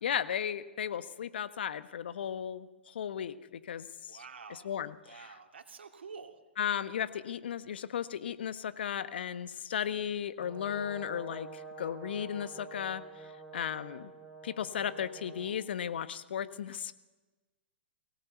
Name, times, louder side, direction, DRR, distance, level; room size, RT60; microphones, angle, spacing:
voice 1, 0.0-4.2 4.5-5.4 6.6-13.0 13.5-14.1 14.4-16.9, left 9 dB, 65° left, 14 dB, 1.2 m, -35 dB
voice 2, 4.1-4.7 5.0-6.4, right 5 dB, 75° right, 5 dB, 2.5 m, -48 dB
Brass instrument, 10.4-15.6, right 4 dB, 15° right, 6.4 m, -48 dB
23.0 x 17.0 x 8.1 m, 1.2 s
figure-of-eight pair, 115°, 6 cm